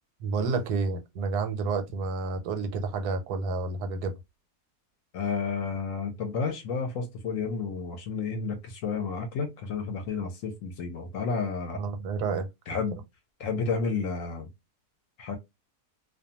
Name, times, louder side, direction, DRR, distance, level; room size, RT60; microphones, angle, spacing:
voice 1, 0.2-4.1 11.7-12.5, right 4 dB, 90° right, 1.1 m, -30 dB
voice 2, 5.1-11.8 12.7-13.0 13.4-14.5 15.2-15.4, left 5 dB, 70° left, 0.9 m, -31 dB
2.5 x 2.2 x 2.7 m
omnidirectional pair, 1.7 m